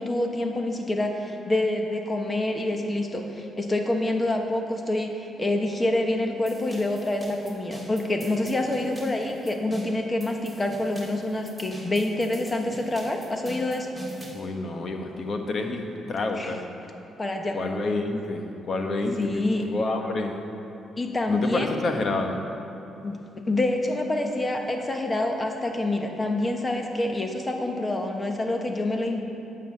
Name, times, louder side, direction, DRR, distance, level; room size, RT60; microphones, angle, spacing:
voice 1, 0.0-13.9 16.3-16.5 17.2-17.6 19.2-19.7 21.0-21.7 23.0-23.2 23.4-29.2, left 1 dB, 20° left, 3 dB, 1.2 m, -27 dB
sound 1, 6.5-14.4, equal, ahead, 2.1 m, -43 dB
voice 2, 14.3-16.7 17.5-20.4 21.3-22.4, left 2 dB, 50° left, 4 dB, 1.1 m, -29 dB
9.3 x 7.7 x 6.5 m, 2.8 s
cardioid pair, 90°, 0 cm